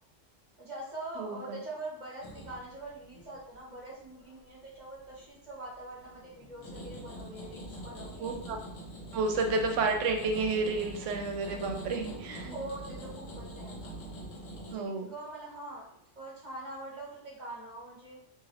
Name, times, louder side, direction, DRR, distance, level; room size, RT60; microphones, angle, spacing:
voice 1, 0.6-8.3 12.5-13.9 14.7-15.9 16.2-18.2, right 2 dB, 35° right, -5 dB, 1.0 m, -43 dB
voice 2, 1.2-1.6 8.2-8.6 9.1-12.5 14.7-15.1, right 3 dB, 75° right, 4 dB, 0.9 m, -31 dB
sound 1, 2.2-4.4 4.8-5.3 5.7-14.7, right 1 dB, 90° left, 1.1 m, -44 dB
2.9 x 2.3 x 3.2 m, 0.75 s
omnidirectional pair, 1.3 m